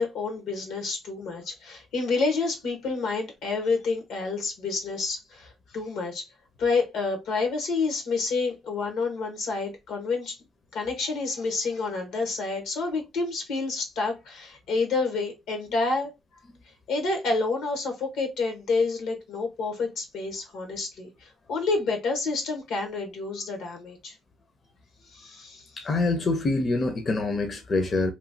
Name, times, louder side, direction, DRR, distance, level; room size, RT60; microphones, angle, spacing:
voice 1, 0.0-6.3 6.6-10.4 10.7-16.1 16.9-24.1 25.1-25.7, left 3 dB, 85° left, 1.1 m, -29 dB
voice 2, 25.8-28.1, left 3 dB, 40° left, 0.5 m, -25 dB
3.0 x 2.3 x 2.6 m
cardioid pair, 90°, 0 cm